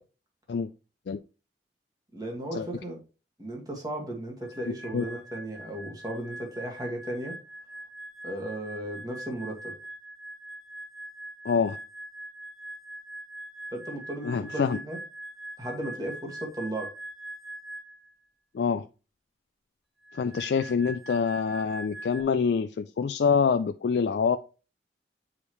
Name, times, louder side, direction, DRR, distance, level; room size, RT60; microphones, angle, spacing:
voice 1, 2.1-3.0 3.4-7.4 8.2-9.7 13.7-15.0 15.6-16.9, right 1 dB, 20° right, 1.9 m, -35 dB
sound 1, 4.4-18.1 20.0-22.2, right 1 dB, ahead, 0.5 m, -43 dB
voice 2, 11.4-11.8 14.2-14.8 18.5-18.9 20.1-24.4, left 6 dB, 65° left, 0.3 m, -26 dB
6.9 x 4.9 x 3.1 m
head